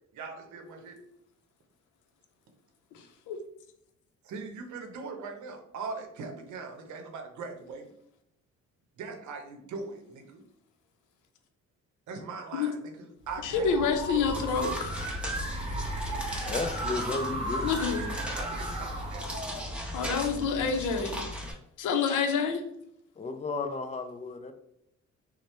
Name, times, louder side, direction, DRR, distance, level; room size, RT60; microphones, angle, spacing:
voice 1, 0.1-1.0 4.2-7.9 9.0-10.4 12.1-14.6 18.3-19.2, right 4 dB, 70° right, 3 dB, 0.7 m, -41 dB
sound 1, 13.3-20.4, right 1 dB, 20° right, 1.2 m, -36 dB
voice 2, 13.4-14.9 17.6-18.1 19.9-21.2 21.8-22.6, left 5 dB, 80° left, 6 dB, 0.5 m, -28 dB
sound 2, 14.2-21.5, equal, 5° right, 0.7 m, -37 dB
voice 3, 16.5-17.7 23.2-24.5, left 3 dB, 25° left, 7 dB, 0.3 m, -33 dB
2.8 x 2.1 x 3.1 m, 0.75 s
cardioid pair, 90°, 30 cm